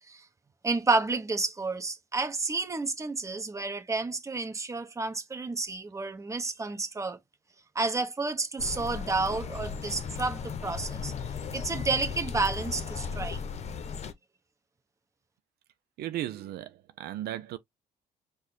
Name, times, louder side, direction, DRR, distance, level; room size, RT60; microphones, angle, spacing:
voice 1, 0.6-7.2 7.7-11.1 11.5-13.4, right 3 dB, 20° right, 1.2 m, -30 dB
sound 1, 8.6-14.1, left 6 dB, 40° left, 0.9 m, -36 dB
voice 2, 16.0-17.6, right 13 dB, 70° right, 0.6 m, -36 dB
4.9 x 2.4 x 4.3 m
cardioid pair, 110°, 17 cm